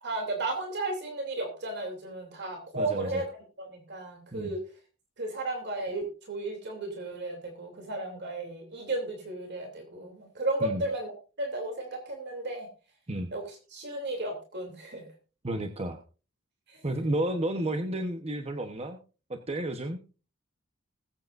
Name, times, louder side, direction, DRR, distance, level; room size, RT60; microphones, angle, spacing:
voice 1, 0.0-3.2 3.6-4.6 5.2-12.7 13.3-13.4 13.7-15.0 16.7-16.8, right 2 dB, 55° right, 2 dB, 2.9 m, -34 dB
voice 2, 2.7-3.2 4.3-4.5 10.6-10.8 13.1-13.3 15.4-16.0 16.8-19.0 19.3-20.0, right 1 dB, 30° right, 6 dB, 1.0 m, -31 dB
20.5 x 8.7 x 2.6 m, 0.34 s
head